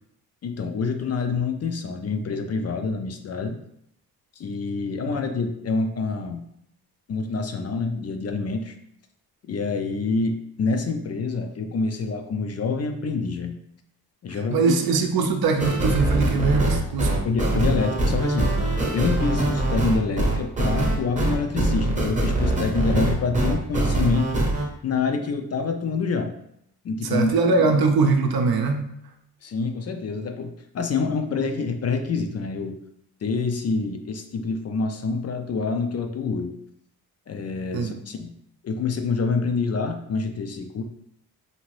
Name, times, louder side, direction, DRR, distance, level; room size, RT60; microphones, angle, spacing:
voice 1, 0.4-3.6 4.4-6.4 7.1-8.8 9.5-13.6 14.2-14.7 17.2-18.5 18.9-24.4 24.8-26.3 26.8-27.3 29.4-32.8 33.2-36.6 37.3-38.3 38.6-40.8, left 4 dB, 40° left, 5 dB, 0.4 m, -26 dB
voice 2, 14.3-17.2 27.0-28.9 37.7-38.0, right 4 dB, 70° right, 4 dB, 0.6 m, -22 dB
sound 1, 15.6-24.6, right 2 dB, 20° right, 0.7 m, -23 dB
2.7 x 2.5 x 3.1 m, 0.75 s
cardioid pair, 75°, 39 cm